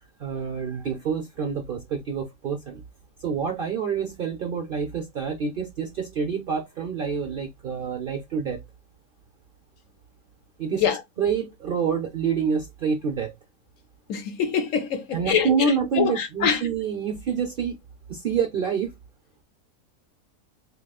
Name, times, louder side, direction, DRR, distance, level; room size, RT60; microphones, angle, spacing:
voice 1, 0.2-2.8 3.2-8.6 10.6-13.3 15.1-17.8 18.1-18.9, right 6 dB, 60° right, 0.6 m, -27 dB
voice 2, 14.1-15.5 16.0-16.6, left 7 dB, 65° left, 0.9 m, -24 dB
3.7 x 2.9 x 2.3 m
omnidirectional pair, 1.6 m